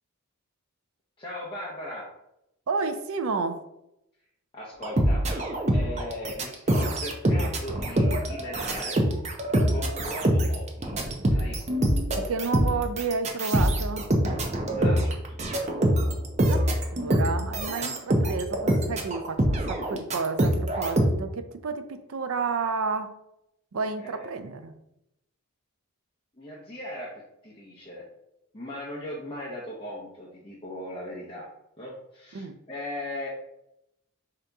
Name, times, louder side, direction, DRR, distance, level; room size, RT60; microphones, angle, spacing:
voice 1, 1.2-2.1 4.5-9.0 9.7-10.9 11.3-11.6 14.7-15.7 24.0-24.3 26.4-28.0 28.5-31.5 31.8-33.3, left 1 dB, 25° left, -6 dB, 0.7 m, -38 dB
voice 2, 2.7-3.6 12.2-14.1 16.5-23.1 23.7-24.7 32.3-32.6, right 4 dB, 75° right, 9 dB, 0.5 m, -31 dB
sound 1, 4.8-21.1, right 1 dB, 30° right, 0.6 m, -24 dB
5.0 x 2.8 x 3.4 m, 0.84 s
head